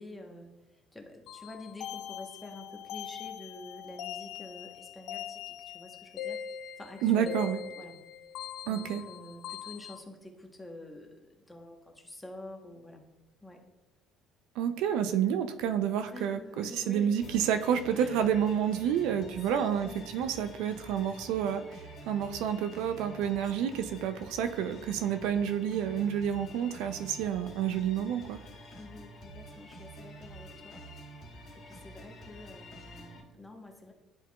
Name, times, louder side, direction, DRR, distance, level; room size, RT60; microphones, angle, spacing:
voice 1, 0.0-6.4 6.8-8.0 8.6-13.0 13.4-13.6 16.1-17.1 17.9-18.2 19.7-20.1 28.7-30.9 31.5-33.9, left 2 dB, 10° left, 2 dB, 1.0 m, -48 dB
sound 1, 1.3-10.0, left 9 dB, 65° left, 0.3 m, -42 dB
voice 2, 7.0-7.6 8.7-9.0 14.6-28.4, right 9 dB, 80° right, 9 dB, 0.4 m, -29 dB
sound 2, 17.2-33.2, right 1 dB, 40° left, 1.8 m, -48 dB
10.5 x 4.5 x 2.3 m, 1.0 s
cardioid pair, 120°, 0 cm